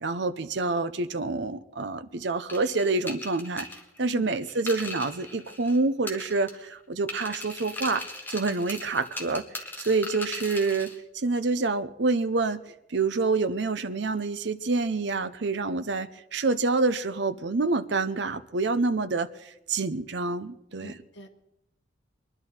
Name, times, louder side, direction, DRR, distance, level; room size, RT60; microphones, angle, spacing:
voice 1, 0.0-3.7 4.0-8.0 8.3-9.4 9.8-12.6 12.9-21.0, right 3 dB, 65° right, 0.7 m, -27 dB
sound 1, 2.5-5.8 6.1-6.7 7.1-11.0, left 2 dB, 10° left, 1.4 m, -39 dB
voice 2, 4.0-4.3 20.8-21.3, left 1 dB, 65° left, 1.7 m, -43 dB
22.0 x 11.0 x 4.3 m
head